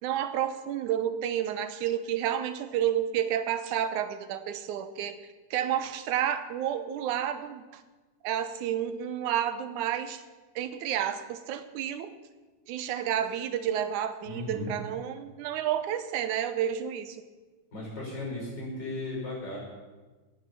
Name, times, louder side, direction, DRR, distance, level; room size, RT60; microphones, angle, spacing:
voice 1, 0.0-5.2 5.5-7.8 8.2-10.2 10.6-12.1 12.7-17.2, right 10 dB, 85° right, 11 dB, 2.3 m, -30 dB
voice 2, 14.2-14.7 17.7-19.6, left 2 dB, 35° left, -2 dB, 5.8 m, -36 dB
18.0 x 7.3 x 6.9 m, 1.3 s
omnidirectional pair, 3.5 m